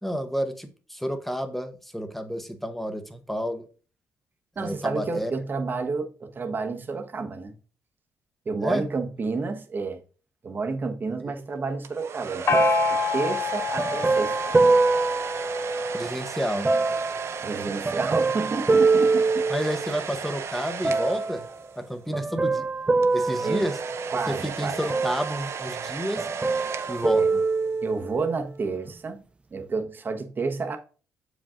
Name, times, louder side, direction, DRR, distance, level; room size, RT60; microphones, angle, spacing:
voice 1, 0.0-3.7 4.6-5.3 8.6-8.8 15.9-16.7 19.5-21.5 21.8-22.7 23.1-23.8 24.3-26.3 26.9-27.4, equal, 5° left, 1.1 m, -30 dB
voice 2, 4.6-7.5 8.4-10.0 10.4-14.3 17.4-19.4 23.4-23.6 24.1-24.8 27.1-27.3 27.8-29.2 29.5-30.8, right 4 dB, 35° right, 1.1 m, -30 dB
sound 1, 11.8-22.0 23.0-27.8, right 6 dB, 55° right, 0.8 m, -35 dB
Gong, 12.5-16.0, left 6 dB, 45° left, 0.7 m, -28 dB
sound 2, 12.5-16.1 16.6-20.2 20.8-21.5 22.1-24.4 24.9-25.9 26.2-28.2 28.9-29.0, right 3 dB, 20° right, 0.4 m, -25 dB
7.1 x 5.0 x 3.7 m
cardioid pair, 95°, 6 cm